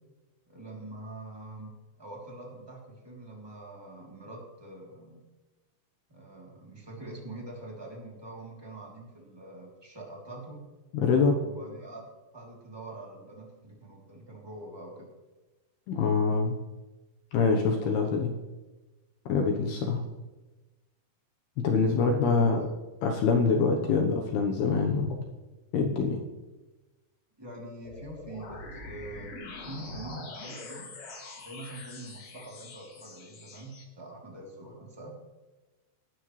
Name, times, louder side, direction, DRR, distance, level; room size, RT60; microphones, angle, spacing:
voice 1, 0.5-1.7 2.0-5.2 6.1-10.6 11.4-12.0 12.3-15.1 22.0-22.7 27.4-30.9 31.4-35.1, right 2 dB, 10° right, -2 dB, 1.7 m, -44 dB
voice 2, 10.9-11.4 15.9-16.6 17.3-18.3 19.3-20.0 21.6-22.6 23.0-25.3 25.7-26.2, left 4 dB, 75° left, 3 dB, 2.5 m, -25 dB
sound 1, 27.8-33.8, left 3 dB, 50° left, 2.1 m, -44 dB
19.5 x 11.5 x 3.2 m, 1.2 s
omnidirectional pair, 5.7 m